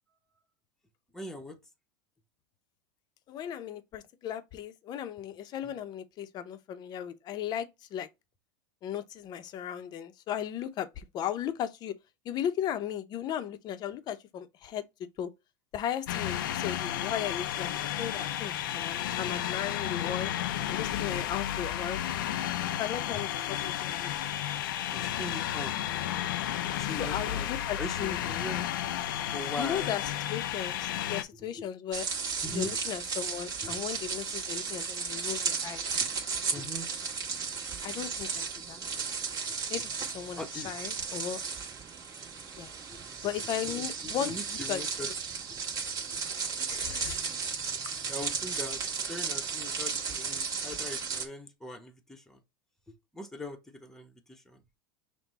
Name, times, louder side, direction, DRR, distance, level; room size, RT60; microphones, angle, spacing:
voice 1, 1.1-1.6 5.6-5.7 24.9-25.8 26.7-27.5 27.8-28.7 29.3-30.0 31.0-31.1 31.5-31.6 32.4-32.8 33.6-33.8 36.5-36.9 40.4-40.7 42.5-43.0 43.6-45.1 48.1-48.8 49.1-52.4 53.1-54.6, left 1 dB, 5° left, 1.0 m, -41 dB
voice 2, 3.3-8.1 8.8-12.0 12.2-14.8 15.2-15.3 15.7-20.3 20.7-22.0 22.8-24.1 26.8-28.1 29.6-32.1 32.5-36.0 37.8-38.8 39.7-39.9 40.1-41.4 42.6-42.7 43.2-44.8 46.7-47.3, left 9 dB, 40° left, 0.7 m, -36 dB
sound 1, 16.1-31.2, left 11 dB, 85° left, 0.6 m, -32 dB
sound 2, 31.9-51.3, right 5 dB, 35° right, 1.6 m, -34 dB
5.9 x 2.3 x 4.0 m
supercardioid pair, 120°, 11 cm